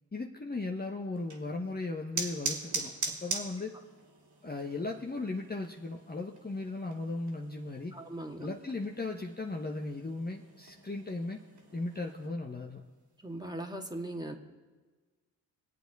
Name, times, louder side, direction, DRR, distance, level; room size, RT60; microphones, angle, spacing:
voice 1, 0.1-3.7 4.4-7.9 8.4-11.4 11.7-12.8, left 2 dB, 20° left, 1 dB, 1.1 m, -37 dB
sound 1, 1.1-12.3, right 4 dB, 60° right, 2.6 m, -42 dB
voice 2, 7.9-8.5 13.2-14.3, right 1 dB, 10° right, 2 dB, 1.9 m, -39 dB
21.5 x 8.1 x 4.1 m, 1.3 s
hypercardioid pair, 45°, 45 cm